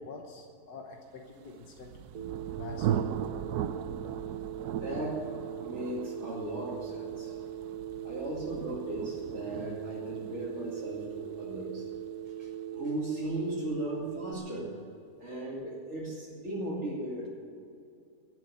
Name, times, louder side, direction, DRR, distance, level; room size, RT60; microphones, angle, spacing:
voice 1, 0.0-1.9 2.6-3.1 4.2-4.3 8.0-8.1, left 3 dB, 90° left, 1 dB, 1.7 m, -46 dB
Thunder, 1.5-13.0, right 9 dB, 85° right, 1.2 m, -38 dB
Telephone, 2.1-14.3, right 10 dB, 65° right, 1.2 m, -40 dB
voice 2, 4.6-5.3 5.6-7.3 8.0-11.8 12.4-14.7 15.2-17.3, right 1 dB, 45° right, -8 dB, 3.0 m, -37 dB
14.5 x 8.2 x 9.4 m, 2.5 s
omnidirectional pair, 1.7 m